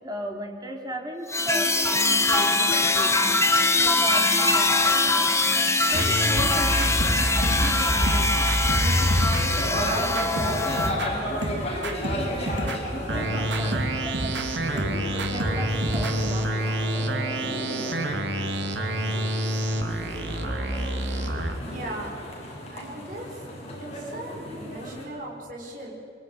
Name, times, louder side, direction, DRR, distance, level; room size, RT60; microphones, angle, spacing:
voice 1, 0.0-3.4 3.8-5.3 5.9-8.5 8.8-11.4 12.1-14.9 15.3-16.7, right 1 dB, 20° right, 2 dB, 3.3 m, -36 dB
sound 1, 1.3-10.9, left 3 dB, 15° left, 1.6 m, -22 dB
sound 2, 5.9-11.2 11.4-21.5, right 1 dB, 80° right, 3.2 m, -27 dB
sound 3, 9.5-25.0, equal, 35° left, 7.2 m, -34 dB
voice 2, 21.7-22.2 22.7-23.4 23.9-25.9, right 1 dB, 45° right, -2 dB, 5.5 m, -38 dB
25.5 x 23.5 x 9.8 m, 2.3 s
head